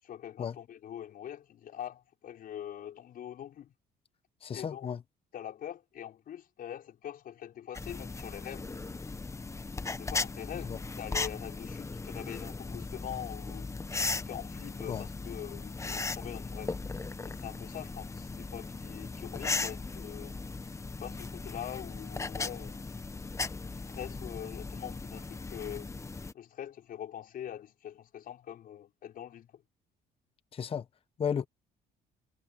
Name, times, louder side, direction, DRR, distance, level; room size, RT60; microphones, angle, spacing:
voice 1, 0.0-3.7 4.5-4.9 5.3-8.7 9.9-13.7 14.1-16.8 17.2-20.4 21.0-22.8 23.7-25.9 26.3-29.6, left 10 dB, 60° left, 5.6 m, -43 dB
voice 2, 4.4-5.0 10.7-10.8 14.9-15.0 30.5-30.8 31.2-31.5, left 7 dB, 35° left, 0.8 m, -33 dB
sound 1, 7.7-26.3, left 3 dB, 15° left, 1.1 m, -38 dB
cardioid pair, 110°, 17 cm